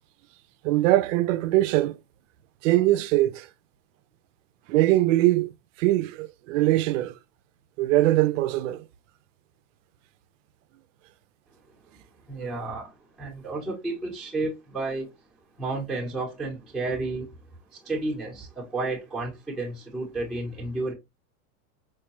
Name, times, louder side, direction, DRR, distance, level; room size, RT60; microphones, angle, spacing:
voice 1, 0.6-2.0 2.6-3.5 4.7-5.5 5.8-7.1 7.8-8.8, right 16 dB, 60° right, 0.5 m, -22 dB
voice 2, 12.3-15.1 15.6-17.3 17.7-20.9, right 2 dB, ahead, 0.7 m, -31 dB
4.6 x 2.2 x 2.9 m
supercardioid pair, 135°, 43 cm